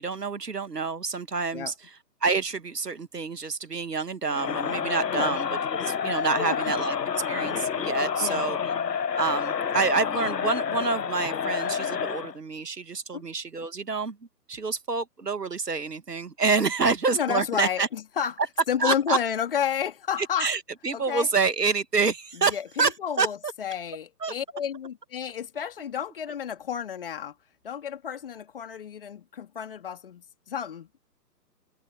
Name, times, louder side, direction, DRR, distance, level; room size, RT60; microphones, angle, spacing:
voice 1, 0.0-1.7 2.2-5.5 5.8-6.9 7.3-8.6 9.1-14.2 14.5-17.9 18.8-19.2 20.4-22.9 23.2-23.3 24.2-24.3, right 4 dB, 70° right, 1.6 m, -27 dB
Crowd, 4.3-12.3, left 7 dB, 75° left, 0.8 m, -29 dB
voice 2, 6.4-6.8 8.2-8.4 13.1-13.2 17.1-18.4 18.7-20.5 20.9-21.3 22.3-27.4 27.6-31.0, left 8 dB, 35° left, 2.3 m, -31 dB
figure-of-eight pair, 140°, 50 cm